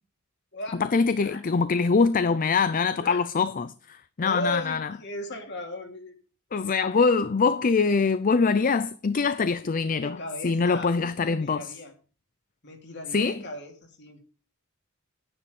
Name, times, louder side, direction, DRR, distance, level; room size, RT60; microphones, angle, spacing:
voice 1, 0.9-4.9 6.5-10.2 10.4-11.7 13.1-13.4, left 4 dB, 40° left, 0.5 m, -24 dB
voice 2, 4.2-6.2 9.7-11.9 12.6-14.2, left 1 dB, 55° left, 3.0 m, -37 dB
10.0 x 9.8 x 5.3 m
head